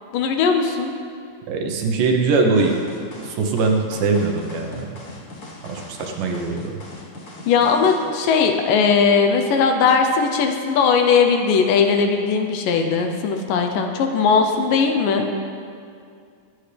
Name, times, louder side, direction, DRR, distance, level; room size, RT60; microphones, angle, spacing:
voice 1, 0.1-0.9 7.5-15.3, left 5 dB, 75° left, 4 dB, 2.3 m, -18 dB
voice 2, 1.5-2.7 3.2-4.9 5.6-6.8, right 3 dB, 75° right, 2 dB, 2.5 m, -21 dB
sound 1, 2.5-8.1, left 2 dB, 55° left, 1.0 m, -40 dB
22.5 x 8.1 x 3.4 m, 2.3 s
omnidirectional pair, 4.1 m